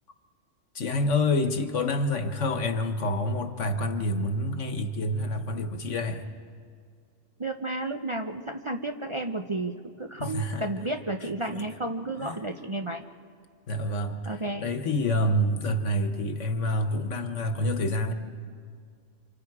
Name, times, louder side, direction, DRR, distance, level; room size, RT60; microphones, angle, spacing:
voice 1, 0.7-6.2 10.2-10.7 12.2-12.4 13.7-18.1, left 1 dB, 70° left, 7 dB, 1.6 m, -27 dB
voice 2, 7.4-13.0 14.3-14.7, right 2 dB, 30° right, 3 dB, 0.7 m, -32 dB
28.5 x 27.0 x 4.9 m, 2.1 s
omnidirectional pair, 1.3 m